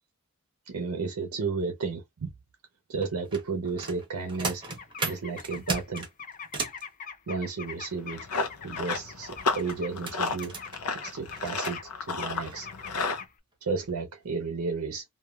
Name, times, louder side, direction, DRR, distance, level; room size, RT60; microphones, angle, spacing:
voice 1, 0.7-2.3 2.9-4.6 5.0-6.1 7.3-8.3 8.6-10.5 11.0-12.7 13.6-15.0, right 4 dB, 80° right, 0.6 m, -33 dB
sound 1, 3.0-6.8 9.3-11.7 12.5-12.6 13.0-13.2 13.7-13.9 14.3-14.4, right 3 dB, 20° right, 0.8 m, -37 dB
sound 2, 4.3-9.9 10.2-13.3, left 6 dB, 35° left, 0.4 m, -43 dB
Run, 7.9-13.2, left 4 dB, 85° left, 0.6 m, -32 dB
3.0 x 2.3 x 2.2 m
head